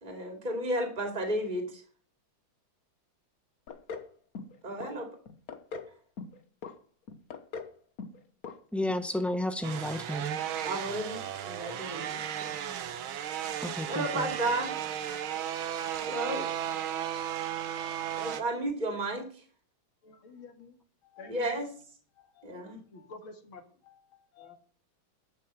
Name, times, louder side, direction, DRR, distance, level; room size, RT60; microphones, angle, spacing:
voice 1, 0.0-1.8 4.6-5.1 10.6-12.5 13.9-14.7 16.0-16.5 18.2-19.4 21.3-21.7 22.4-22.8, right 1 dB, 20° right, 2.7 m, -33 dB
sound 1, 3.7-4.1 4.4-4.9 5.3-5.9 6.2-6.7 7.1-7.7 8.0-8.2 8.4-8.6 8.9-9.0, left 5 dB, 50° left, 1.5 m, -40 dB
voice 2, 8.7-10.4 13.6-14.3, left 1 dB, ahead, 0.7 m, -32 dB
sound 2, 9.6-18.4, right 10 dB, 80° right, 1.8 m, -35 dB
voice 3, 20.0-20.8 21.0-21.5 22.2-24.6, left 4 dB, 80° left, 2.9 m, -50 dB
12.0 x 6.4 x 7.4 m
omnidirectional pair, 2.2 m